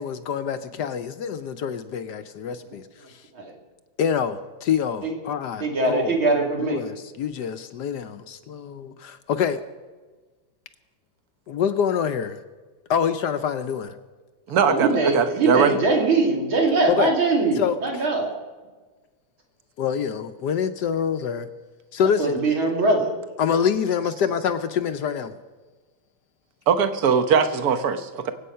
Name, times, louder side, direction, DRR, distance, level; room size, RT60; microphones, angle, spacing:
voice 1, 0.0-2.8 3.1-3.2 4.0-6.2 6.6-9.6 11.5-12.4 12.9-13.9 16.9-17.1 17.6-18.0 19.8-21.5 21.9-22.4 23.4-25.3, left 7 dB, 70° left, 10 dB, 1.1 m, -26 dB
voice 2, 5.6-6.8 14.7-18.3 22.2-23.1, right 3 dB, 85° right, 1 dB, 3.4 m, -21 dB
voice 3, 14.5-15.8 26.7-28.3, right 6 dB, 55° right, 10 dB, 1.3 m, -21 dB
25.0 x 8.4 x 5.6 m, 1.3 s
omnidirectional pair, 2.2 m